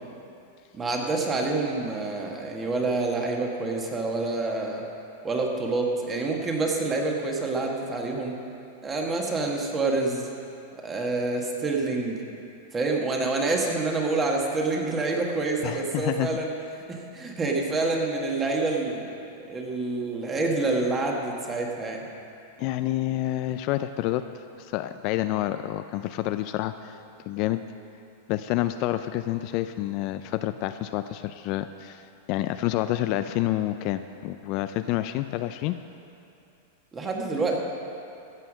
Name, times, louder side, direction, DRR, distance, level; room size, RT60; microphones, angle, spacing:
voice 1, 0.7-4.8 5.2-8.4 8.8-10.3 10.7-12.2 12.7-16.5 16.9-19.1 19.4-22.0 36.9-37.6, right 3 dB, 20° right, 0 dB, 1.6 m, -27 dB
voice 2, 15.6-16.3 22.6-24.2 24.7-27.0 27.3-27.6 28.3-32.0 32.3-35.8, left 14 dB, 50° left, 10 dB, 0.4 m, -28 dB
15.0 x 5.7 x 6.3 m, 2.7 s
hypercardioid pair, 130°, 0 cm